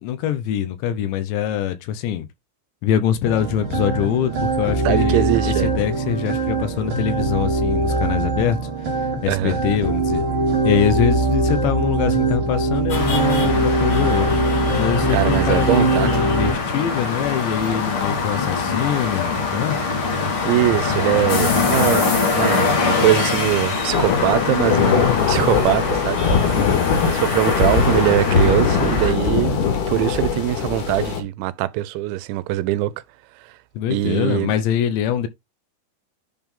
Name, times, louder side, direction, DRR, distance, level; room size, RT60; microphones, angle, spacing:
voice 1, 0.0-2.3 2.8-8.6 8.9-10.2 10.6-14.4 14.8-19.8 26.5-26.9 33.8-35.3, left 10 dB, 80° left, 2.9 m, -23 dB
sound 1, 3.2-16.5, right 3 dB, 40° right, 1.8 m, -22 dB
voice 2, 4.9-5.7 9.3-9.6 15.1-16.1 20.4-26.2 27.0-32.9 33.9-34.5, right 15 dB, 85° right, 2.9 m, -22 dB
sound 2, 12.9-29.1, left 4 dB, 50° left, 1.6 m, -23 dB
sound 3, 17.1-31.2, left 6 dB, 65° left, 3.4 m, -23 dB
10.5 x 3.6 x 3.6 m
omnidirectional pair, 5.2 m